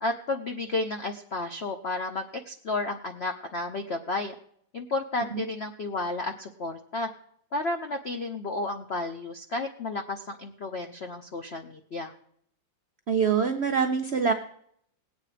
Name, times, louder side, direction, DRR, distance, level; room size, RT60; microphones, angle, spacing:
voice 1, 0.0-4.3 4.7-7.1 7.5-12.1, left 2 dB, 70° left, 5 dB, 0.6 m, -32 dB
voice 2, 13.1-14.3, right 6 dB, 70° right, 4 dB, 0.6 m, -24 dB
18.5 x 8.4 x 5.0 m, 0.68 s
omnidirectional pair, 2.2 m